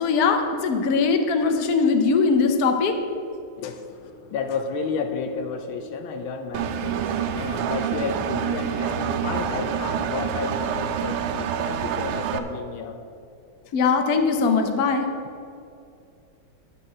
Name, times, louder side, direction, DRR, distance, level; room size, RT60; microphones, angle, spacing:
voice 1, 0.0-2.9 13.7-15.0, left 4 dB, 55° left, 5 dB, 1.1 m, -21 dB
voice 2, 3.6-13.1, left 5 dB, 75° left, 7 dB, 1.4 m, -32 dB
Engine, 6.5-12.4, right 8 dB, 90° right, 1.6 m, -27 dB
11.0 x 5.0 x 7.6 m, 2.5 s
omnidirectional pair, 2.3 m